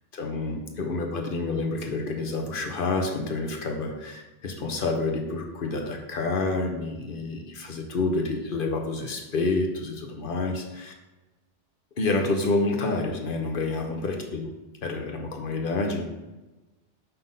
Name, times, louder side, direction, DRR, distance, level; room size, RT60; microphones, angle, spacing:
voice 1, 0.1-10.9 12.0-14.5 14.8-16.0, left 3 dB, 55° left, 3 dB, 1.0 m, -28 dB
5.6 x 3.8 x 5.4 m, 1.1 s
omnidirectional pair, 1.1 m